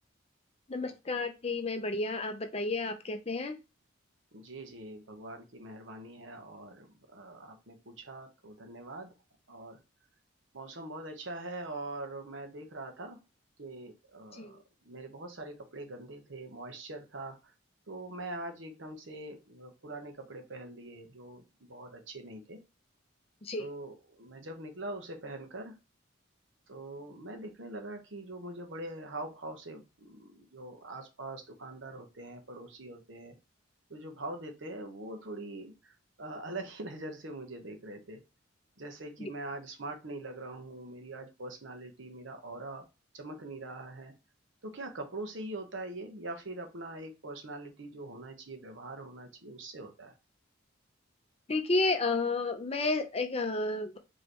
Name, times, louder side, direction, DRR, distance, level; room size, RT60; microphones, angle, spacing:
voice 1, 0.7-3.6 14.3-14.6 23.4-23.7 39.2-39.3 51.5-54.0, left 3 dB, 30° left, 6 dB, 0.6 m, -31 dB
voice 2, 4.3-9.1 9.5-9.8 10.5-13.2 13.6-17.4 17.9-22.6 23.6-25.8 26.7-33.4 33.9-38.2 38.8-42.9 43.1-44.1 44.6-50.2, right 2 dB, 70° right, 5 dB, 1.1 m, -43 dB
5.1 x 3.1 x 3.0 m, 0.28 s
head